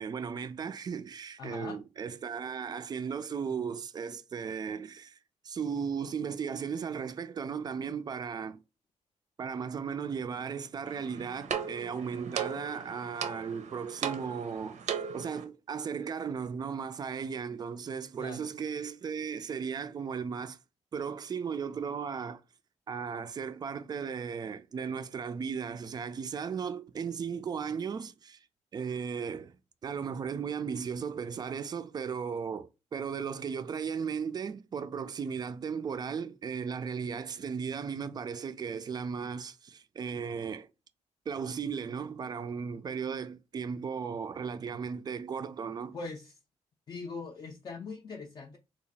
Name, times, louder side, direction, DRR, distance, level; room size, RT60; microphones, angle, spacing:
voice 1, 0.0-5.2 5.4-8.6 9.4-14.8 15.1-20.6 20.9-22.4 22.9-28.4 28.7-29.6 29.8-40.7 41.3-46.0, right 6 dB, 35° right, 0.3 m, -36 dB
voice 2, 1.4-1.8 18.2-18.5 45.9-46.3 46.9-48.6, left 4 dB, 35° left, 0.4 m, -41 dB
sound 1, 10.9-15.4, right 7 dB, 75° right, 0.6 m, -37 dB
2.8 x 2.4 x 4.0 m
wide cardioid pair, 145°, 12 cm